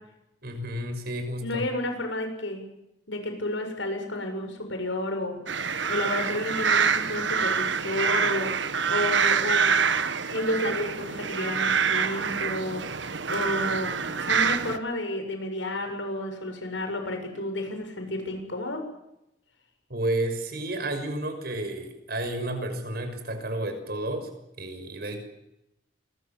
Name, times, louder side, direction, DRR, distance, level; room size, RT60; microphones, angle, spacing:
voice 1, 0.4-1.7 19.9-24.3 24.6-25.2, right 1 dB, 55° right, 7 dB, 6.2 m, -31 dB
voice 2, 1.4-2.6 3.1-5.3 5.9-9.7 10.3-12.8 13.3-18.8, left 1 dB, 90° left, 5 dB, 7.5 m, -31 dB
sound 1, 5.5-14.8, right 6 dB, 75° right, 1.6 m, -26 dB
28.0 x 22.0 x 7.5 m, 0.86 s
head